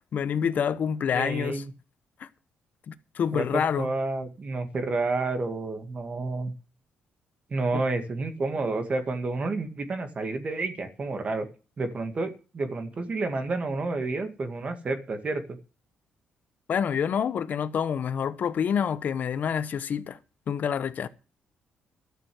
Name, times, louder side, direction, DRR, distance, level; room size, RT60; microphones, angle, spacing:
voice 1, 0.1-1.6 2.2-2.3 2.9-3.9 7.7-7.8 16.7-20.2 20.5-21.1, left 7 dB, 55° left, 0.9 m, -27 dB
voice 2, 1.1-1.7 3.3-6.5 7.5-11.5 11.8-15.6, right 3 dB, 40° right, 2.1 m, -30 dB
12.0 x 6.7 x 7.8 m
cardioid pair, 100°, 3 cm